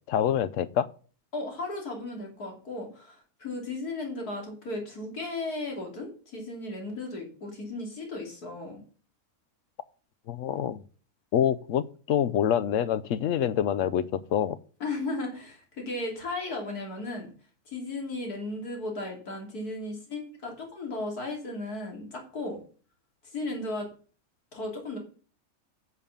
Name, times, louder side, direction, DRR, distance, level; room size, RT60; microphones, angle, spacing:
voice 1, 0.1-0.9 10.3-10.8 11.3-14.6, left 9 dB, 65° left, 0.9 m, -26 dB
voice 2, 1.3-8.8 14.8-17.3 17.7-22.6 23.2-23.9 24.5-25.0, left 2 dB, 90° left, 3.4 m, -35 dB
8.9 x 6.6 x 7.2 m
omnidirectional pair, 1.6 m